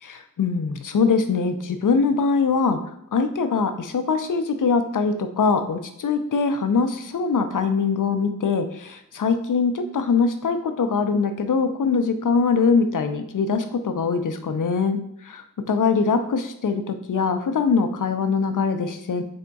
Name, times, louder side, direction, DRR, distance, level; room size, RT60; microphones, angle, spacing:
voice 1, 0.0-2.8 3.1-19.2, left 5 dB, 70° left, 8 dB, 0.5 m, -22 dB
3.5 x 2.3 x 3.9 m, 0.76 s
wide cardioid pair, 55°, 33 cm